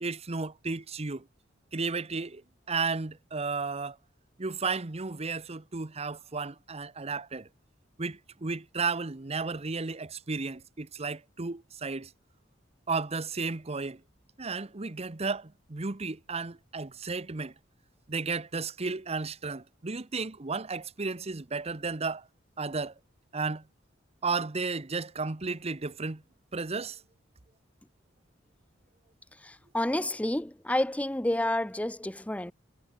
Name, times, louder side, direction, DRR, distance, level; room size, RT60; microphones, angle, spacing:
voice 1, 0.0-1.2 1.7-2.4 2.7-4.0 4.4-7.5 8.0-12.1 12.9-14.0 14.4-17.5 18.1-22.2 22.6-22.9 23.3-23.6 24.2-26.2 26.5-27.0, right 4 dB, 35° right, 0.9 m, -33 dB
voice 2, 29.4-32.5, left 1 dB, 5° left, 0.7 m, -29 dB
head